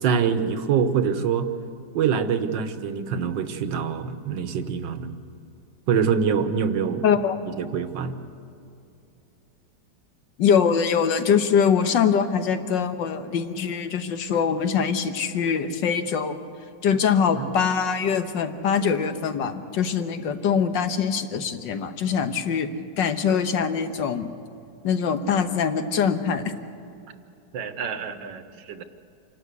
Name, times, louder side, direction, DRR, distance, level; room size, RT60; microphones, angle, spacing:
voice 1, 0.0-1.5 1.9-5.1 5.9-7.0 7.6-8.2 17.4-17.5 27.5-28.4 28.7-28.8, right 7 dB, 70° right, 9 dB, 1.7 m, -25 dB
voice 2, 7.0-7.4 10.4-16.4 16.8-22.7 23.0-24.3 24.8-26.5, left 7 dB, 70° left, 8 dB, 1.7 m, -23 dB
27.5 x 12.5 x 8.3 m, 2.6 s
omnidirectional pair, 2.1 m